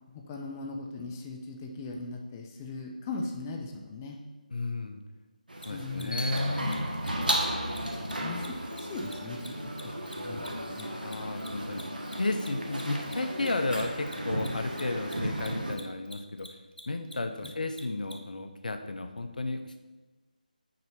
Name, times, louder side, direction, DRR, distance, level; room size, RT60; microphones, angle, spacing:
voice 1, 0.1-4.2 5.7-6.3 7.6-7.8 8.2-9.5 9.8-10.9 17.4-17.5, left 3 dB, 20° left, 2 dB, 0.6 m, -39 dB
voice 2, 4.5-5.0 5.6-6.9 10.9-11.8 12.2-16.5 16.9-19.8, left 2 dB, 65° left, 7 dB, 0.8 m, -33 dB
sound 1, 5.5-15.8, right 1 dB, 80° right, 1.5 m, -34 dB
Mechanisms, 5.6-5.7 5.9-6.0 6.3-6.4 6.7-6.8 7.0-7.1 7.4-7.5 7.7-7.8 8.1-10.8 11.1-18.1, left 1 dB, 90° left, 1.3 m, -47 dB
6.5 x 4.3 x 5.7 m, 1.2 s
figure-of-eight pair, 160°, 5 cm